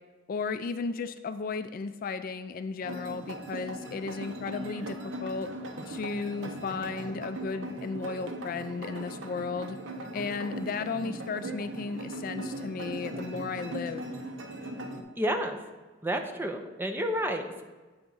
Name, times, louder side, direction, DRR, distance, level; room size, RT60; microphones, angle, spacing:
voice 1, 0.3-5.5 5.9-9.8 10.1-14.0, left 4 dB, 45° left, 10 dB, 0.3 m, -34 dB
sound 1, 2.8-15.0, right 1 dB, 70° right, 0.8 m, -39 dB
voice 2, 15.2-15.6 16.0-17.6, equal, 10° right, 5 dB, 0.5 m, -30 dB
8.6 x 3.5 x 5.4 m, 1.3 s
head